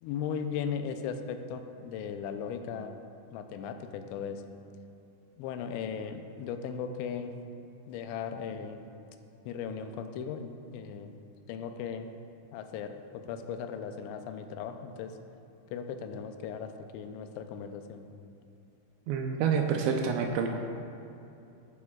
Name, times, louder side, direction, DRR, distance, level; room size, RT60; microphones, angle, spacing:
voice 1, 0.0-3.0 3.3-4.4 5.4-7.3 7.9-8.9 9.5-11.1 11.5-12.1 12.5-15.1 15.7-18.1, left 7 dB, 90° left, 7 dB, 2.9 m, -37 dB
voice 2, 19.1-20.5, right 6 dB, 85° right, 2 dB, 2.9 m, -28 dB
20.5 x 8.5 x 2.4 m, 2.7 s
omnidirectional pair, 5.1 m